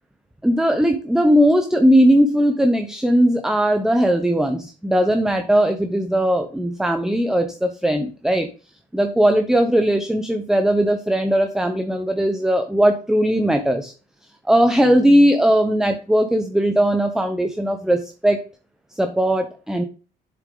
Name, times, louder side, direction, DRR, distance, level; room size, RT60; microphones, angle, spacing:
voice 1, 0.4-8.5 8.9-13.9 14.5-18.4 18.9-19.8, equal, 5° right, 7 dB, 0.8 m, -18 dB
8.1 x 6.9 x 3.9 m, 0.36 s
cardioid pair, 110°, 17 cm